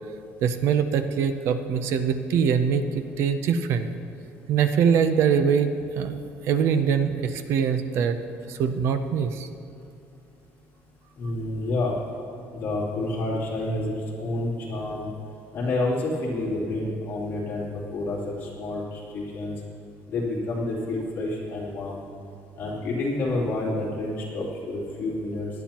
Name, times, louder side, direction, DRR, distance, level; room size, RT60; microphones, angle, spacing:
voice 1, 0.4-3.9 4.5-6.2 6.5-8.2 8.5-9.5, right 7 dB, 55° right, 9 dB, 0.6 m, -23 dB
voice 2, 11.2-12.0 12.5-13.9 14.2-15.1 15.5-19.5 20.1-22.0 22.6-25.5, left 2 dB, 40° left, -6 dB, 2.9 m, -29 dB
17.5 x 12.0 x 3.0 m, 2.5 s
cardioid pair, 175°, 5 cm